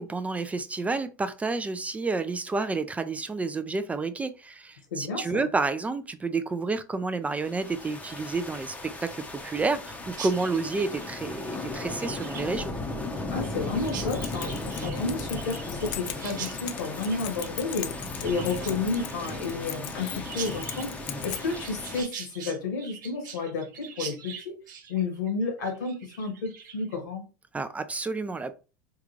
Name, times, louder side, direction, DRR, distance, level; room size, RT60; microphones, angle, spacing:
voice 1, 0.0-8.7 9.0-12.7 27.5-28.5, right 3 dB, 15° right, 0.3 m, -30 dB
voice 2, 4.9-5.5 13.3-24.6 24.9-27.2, left 4 dB, 85° left, 1.6 m, -31 dB
sound 1, 7.3-22.0, left 2 dB, 15° left, 0.7 m, -36 dB
Chirp tweet, 10.1-27.0, right 7 dB, 90° right, 0.7 m, -43 dB
Keys jangling, 13.8-21.7, left 12 dB, 55° left, 0.4 m, -40 dB
3.7 x 2.3 x 3.1 m
supercardioid pair, 110°, 10 cm